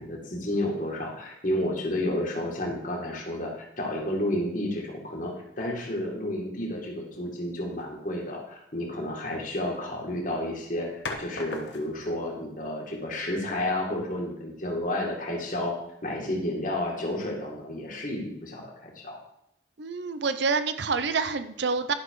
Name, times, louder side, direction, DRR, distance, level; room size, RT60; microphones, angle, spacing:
voice 1, 0.0-15.8 16.0-19.2, left 1 dB, 45° left, -1 dB, 2.1 m, -31 dB
sound 1, 7.0-7.3 9.5-9.9 11.0-12.2, left 3 dB, 70° left, 1.3 m, -38 dB
voice 2, 19.8-21.9, right 4 dB, 65° right, 11 dB, 0.6 m, -27 dB
11.0 x 6.1 x 4.7 m, 0.81 s
head